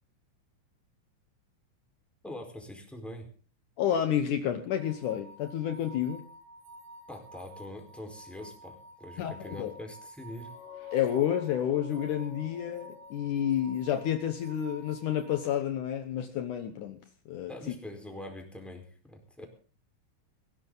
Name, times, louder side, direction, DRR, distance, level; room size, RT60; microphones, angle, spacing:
voice 1, 2.2-3.3 7.1-10.5 17.5-19.5, left 1 dB, ahead, 3 dB, 3.8 m, -43 dB
voice 2, 3.8-6.2 9.2-9.7 10.9-17.5, left 10 dB, 80° left, 7 dB, 1.8 m, -30 dB
sound 1, 4.7-15.6, right 1 dB, 40° right, 1.9 m, -51 dB
sound 2, 10.3-13.9, left 12 dB, 55° left, 3.0 m, -48 dB
20.0 x 16.5 x 4.0 m, 0.40 s
omnidirectional pair, 5.2 m